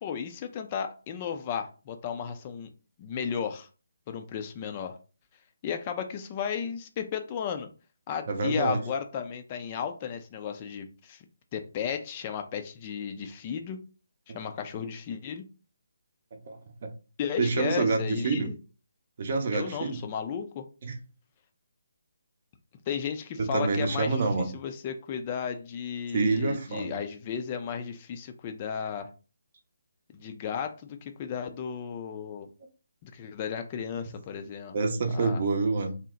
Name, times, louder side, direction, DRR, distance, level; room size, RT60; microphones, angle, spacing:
voice 1, 0.0-2.7 3.0-3.7 4.1-5.0 5.6-7.7 8.1-11.2 11.5-13.8 14.3-15.4 17.2-18.5 19.5-20.6 22.9-29.1 30.1-32.5 33.0-34.8 35.1-35.4, left 7 dB, 30° left, 0.4 m, -34 dB
voice 2, 8.3-8.8 14.3-14.4 16.5-16.9 17.4-18.5 19.2-20.0 20.8-21.0 23.4-24.5 26.1-27.0 34.7-36.0, right 3 dB, 45° right, 0.6 m, -27 dB
2.8 x 2.0 x 3.7 m
figure-of-eight pair, 150°, 0 cm